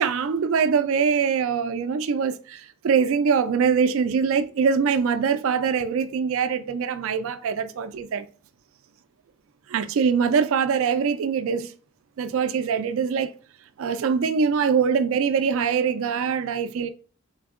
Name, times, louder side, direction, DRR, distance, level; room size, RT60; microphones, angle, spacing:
voice 1, 0.0-8.3 9.7-11.7 12.2-13.3 13.8-16.9, right 6 dB, 60° right, 0.3 m, -23 dB
3.9 x 3.5 x 2.4 m
head